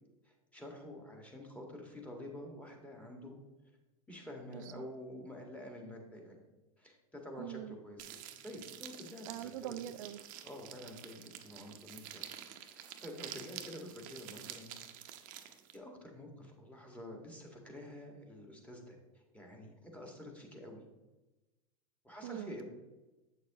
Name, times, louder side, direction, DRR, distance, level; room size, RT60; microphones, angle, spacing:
voice 1, 0.3-3.4 4.1-6.4 6.8-9.5 10.4-12.2 12.5-14.7 15.3-20.9 22.0-22.6, left 1 dB, 5° left, 0 dB, 1.7 m, -49 dB
voice 2, 4.5-4.9 7.4-7.8 9.3-10.2 22.2-22.6, right 13 dB, 70° right, 12 dB, 0.4 m, -43 dB
sound 1, 8.0-15.8, right 11 dB, 50° right, 0.8 m, -49 dB
7.8 x 6.5 x 2.9 m, 1.1 s
hypercardioid pair, 100°, 18 cm